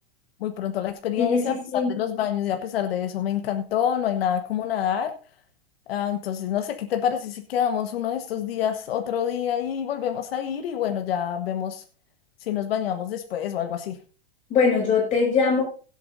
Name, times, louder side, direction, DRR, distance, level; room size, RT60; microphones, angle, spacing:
voice 1, 0.4-1.5 1.9-5.1 5.9-11.8 12.5-14.0, left 9 dB, 80° left, 6 dB, 1.5 m, -27 dB
voice 2, 1.2-2.0 14.5-15.6, left 5 dB, 25° left, -3 dB, 7.0 m, -21 dB
20.5 x 8.3 x 2.7 m, 0.37 s
supercardioid pair, 155°, 29 cm